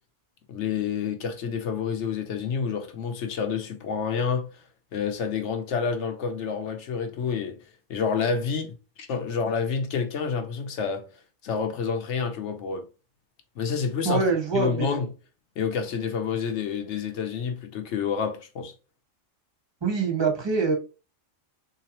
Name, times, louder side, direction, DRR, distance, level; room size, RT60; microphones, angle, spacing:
voice 1, 0.5-4.5 4.9-7.6 7.9-11.0 11.4-12.8 13.6-15.1 15.6-18.7, left 6 dB, 65° left, 1.0 m, -28 dB
voice 2, 14.0-15.0 19.8-20.7, right 4 dB, 20° right, 1.0 m, -24 dB
3.5 x 2.9 x 2.9 m
omnidirectional pair, 1.3 m